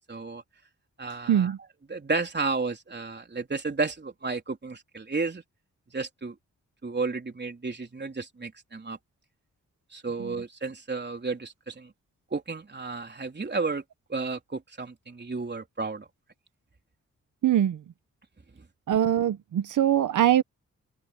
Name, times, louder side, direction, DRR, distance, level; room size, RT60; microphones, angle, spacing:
voice 1, 0.1-0.4 1.0-1.5 1.9-5.4 5.9-6.4 6.8-9.0 9.9-11.9 12.3-13.8 14.1-16.1, right 3 dB, 35° right, 3.8 m, -32 dB
voice 2, 17.4-17.8 18.9-20.4, right 11 dB, 85° right, 1.2 m, -22 dB
open air
cardioid pair, 60°, 30 cm